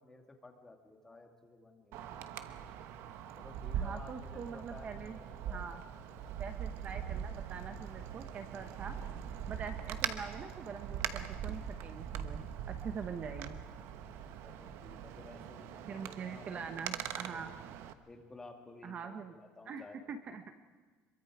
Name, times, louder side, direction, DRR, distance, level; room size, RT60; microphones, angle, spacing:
voice 1, 0.0-2.1 3.4-5.7 5.9-6.3 10.7-10.9 11.4-11.5 14.4-17.4 18.1-20.0, left 2 dB, 10° left, 3 dB, 2.2 m, -54 dB
Wind, 1.9-17.9, right 9 dB, 65° right, 1.1 m, -42 dB
voice 2, 3.7-5.2 5.5-5.8 6.4-9.2 9.5-13.6 15.9-17.5 18.8-19.3 19.7-20.5, right 6 dB, 35° right, 8 dB, 1.0 m, -44 dB
26.0 x 23.0 x 4.8 m, 1.4 s
cardioid pair, 150°, 5 cm